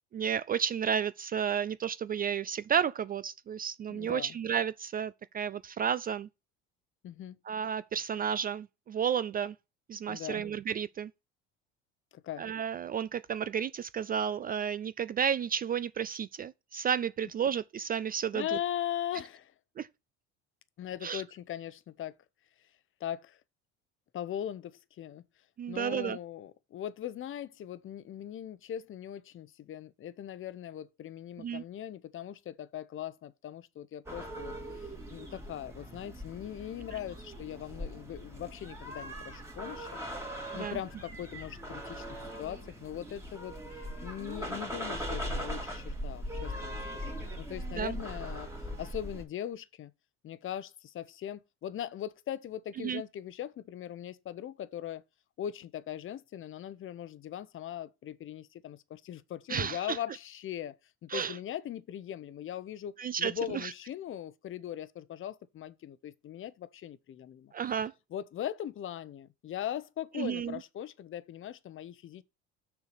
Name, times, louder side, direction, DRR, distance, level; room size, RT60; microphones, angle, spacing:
voice 1, 0.1-6.3 7.5-9.5 9.9-11.1 12.4-18.4 19.8-19.9 21.0-21.2 25.6-26.2 31.4-31.6 40.5-40.8 47.8-48.0 52.8-53.0 59.5-60.0 61.1-61.3 63.0-63.3 63.6-63.7 67.5-67.9 70.2-70.6, right 8 dB, 30° right, 0.4 m, -32 dB
voice 2, 3.9-4.4 7.0-7.4 10.1-10.5 12.1-12.5 18.3-19.5 20.8-22.1 23.0-23.4 24.1-25.2 25.7-39.9 40.5-48.5 48.8-49.9 50.2-55.0 55.4-60.8 61.0-67.5 68.1-72.2, left 10 dB, 40° left, 0.8 m, -40 dB
sound 1, 34.1-49.3, equal, 10° right, 2.5 m, -40 dB
6.7 x 4.7 x 6.6 m
supercardioid pair, 90°, 31 cm